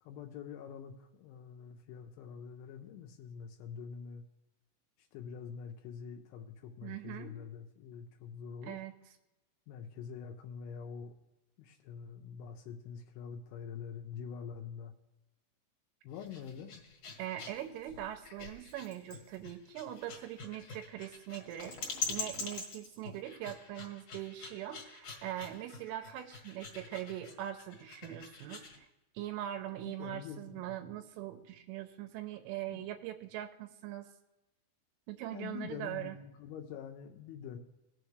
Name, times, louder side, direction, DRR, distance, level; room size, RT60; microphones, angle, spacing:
voice 1, 0.0-4.2 5.0-8.8 9.7-11.1 11.6-14.9 16.0-16.8 29.7-30.8 32.7-32.9 35.3-37.6, left 7 dB, 85° left, 3 dB, 3.0 m, -45 dB
voice 2, 6.8-7.4 8.6-8.9 17.2-28.9 29.1-34.1 35.1-36.2, right 13 dB, 85° right, 6 dB, 3.1 m, -42 dB
sound 1, 16.1-28.8, left 5 dB, 55° left, 1.7 m, -44 dB
18.0 x 7.1 x 3.2 m, 0.98 s
omnidirectional pair, 5.8 m